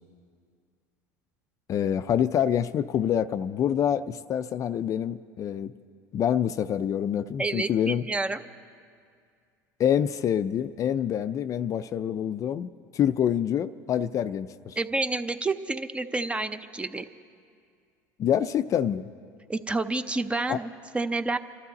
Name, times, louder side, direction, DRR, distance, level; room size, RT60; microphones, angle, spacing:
voice 1, 1.7-5.7 6.1-8.1 9.8-14.8 18.2-19.0 20.5-20.6, left 9 dB, 40° left, 12 dB, 0.4 m, -26 dB
voice 2, 7.4-8.4 14.8-17.1 19.5-21.4, right 3 dB, 15° right, 11 dB, 0.6 m, -29 dB
28.0 x 12.5 x 4.0 m, 2.2 s
supercardioid pair, 100°, 8 cm